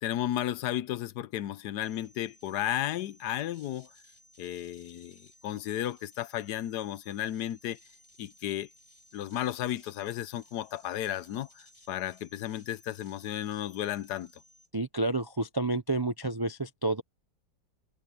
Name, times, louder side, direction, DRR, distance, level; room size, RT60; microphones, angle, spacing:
voice 1, 0.0-3.9 4.4-7.8 8.2-8.7 9.1-14.3, left 12 dB, 75° left, 1.2 m, -34 dB
sound 1, 1.8-14.7, left 1 dB, 35° left, 5.8 m, -60 dB
voice 2, 14.7-17.0, right 2 dB, 40° right, 0.3 m, -30 dB
omnidirectional pair, 1.8 m